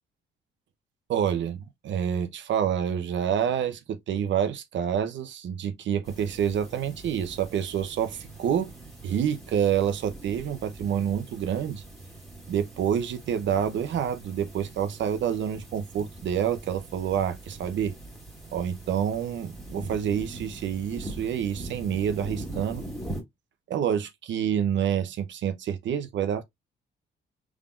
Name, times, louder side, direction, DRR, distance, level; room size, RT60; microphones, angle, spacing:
voice 1, 1.1-8.7 9.0-11.8 12.5-17.9 18.5-22.8 23.7-26.4, right 9 dB, 70° right, 0.8 m, -28 dB
sound 1, 6.0-23.2, right 2 dB, ahead, 1.8 m, -42 dB
3.7 x 3.6 x 2.4 m
cardioid pair, 90°, 20 cm